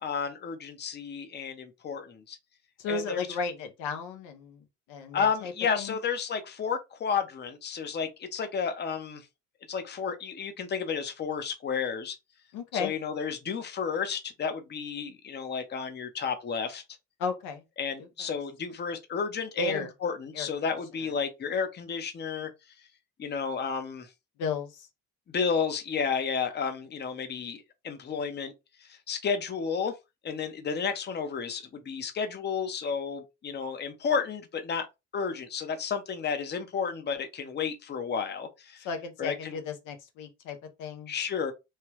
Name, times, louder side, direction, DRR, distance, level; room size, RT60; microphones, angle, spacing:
voice 1, 0.0-2.4 2.9-3.3 5.1-9.2 9.7-12.2 12.7-16.8 17.8-22.5 23.2-24.1 25.3-28.5 28.8-29.9 30.2-34.9 35.1-38.9 39.2-39.6 41.1-41.5, left 6 dB, 35° left, 0.7 m, -32 dB
voice 2, 2.8-6.0 12.5-12.9 17.2-17.6 18.0-18.4 19.6-19.9 20.3-20.5 24.4-24.9 38.8-41.1, left 4 dB, 80° left, 0.9 m, -34 dB
3.2 x 2.2 x 3.0 m
supercardioid pair, 85°, 31 cm